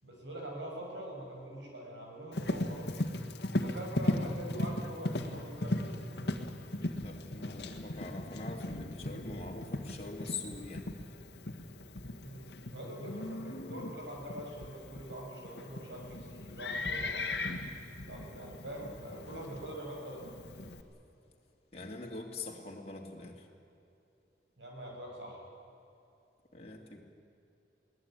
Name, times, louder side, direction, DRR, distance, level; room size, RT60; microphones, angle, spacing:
voice 1, 0.0-2.9 3.5-6.4 12.2-17.4 18.0-20.4 24.6-25.4, right 1 dB, 90° right, 0 dB, 6.8 m, -44 dB
Livestock farm animals working animals, 2.3-20.8, left 1 dB, 65° left, 1.7 m, -38 dB
voice 2, 6.8-10.9 21.7-23.5 26.5-27.0, left 3 dB, 35° left, 0 dB, 2.9 m, -43 dB
22.5 x 18.0 x 9.2 m, 2.7 s
head